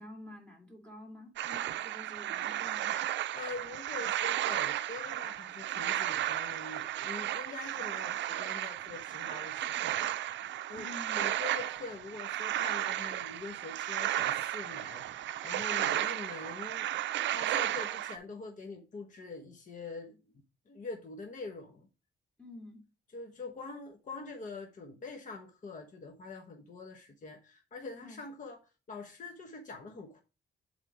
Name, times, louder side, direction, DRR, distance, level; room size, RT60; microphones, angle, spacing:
voice 1, 0.0-2.9 10.7-11.3 15.7-16.0 22.4-22.8 28.0-28.2, left 1 dB, 5° left, 2.3 m, -49 dB
sound 1, 1.4-18.2, right 12 dB, 80° right, 0.5 m, -34 dB
voice 2, 3.3-10.2 10.7-10.9 11.2-20.2 20.7-21.9 23.1-28.6 28.9-30.2, left 3 dB, 45° left, 1.1 m, -44 dB
7.5 x 3.6 x 4.9 m
cardioid pair, 110°, 18 cm